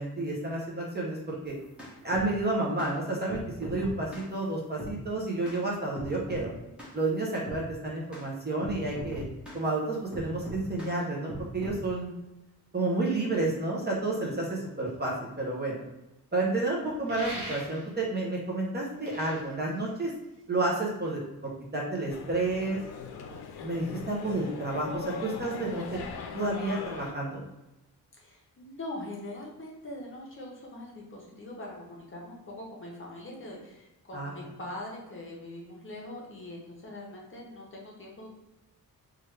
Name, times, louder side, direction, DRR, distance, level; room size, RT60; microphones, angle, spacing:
voice 1, 0.0-1.6 2.0-6.5 6.9-9.2 9.5-12.1 12.7-15.8 16.3-20.1 20.5-21.2 21.7-22.8 23.6-26.0 26.3-27.4 34.1-34.5, right 2 dB, 25° right, -3 dB, 0.5 m, -30 dB
sound 1, 1.5-2.3 2.8-2.9 3.3-4.3 4.8-5.0 5.4-5.6 5.9-6.5 6.8-7.0 7.4-7.6 8.1-8.3 8.6-9.6 10.1-10.9 11.3-11.8, equal, 5° right, 0.8 m, -40 dB
sound 2, 17.1-18.1 18.8-20.5, right 1 dB, 65° right, 1.0 m, -42 dB
sound 3, 22.1-27.1, left 6 dB, 85° left, 0.5 m, -40 dB
voice 2, 28.1-38.3, left 1 dB, 35° left, -3 dB, 0.6 m, -42 dB
3.1 x 2.3 x 3.1 m, 0.95 s
wide cardioid pair, 170°, 37 cm